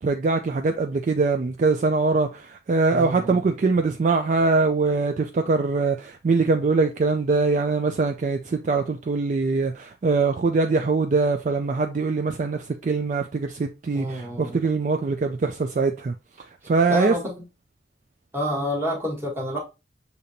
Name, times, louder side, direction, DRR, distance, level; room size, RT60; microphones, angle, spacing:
voice 1, 0.0-17.1, right 3 dB, 45° right, 0.3 m, -23 dB
voice 2, 2.9-3.4 13.9-14.6 16.9-17.3 18.3-19.6, equal, 15° right, 1.4 m, -28 dB
6.6 x 2.8 x 2.6 m
head